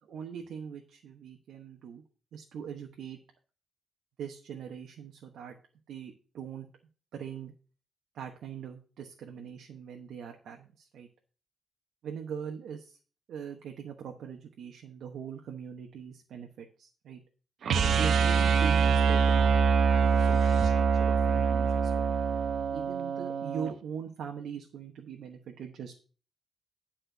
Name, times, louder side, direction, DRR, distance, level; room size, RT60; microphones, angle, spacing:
voice 1, 0.1-2.0 2.3-3.2 4.2-5.6 5.9-6.7 7.1-7.5 8.1-11.1 12.0-13.0 13.3-17.2 17.8-22.1 22.7-25.9, right 7 dB, 90° right, 3 dB, 1.0 m, -41 dB
sound 1, 17.6-23.7, right 6 dB, 60° right, 0.8 m, -24 dB
10.5 x 4.4 x 6.6 m, 0.39 s
wide cardioid pair, 160°, 0 cm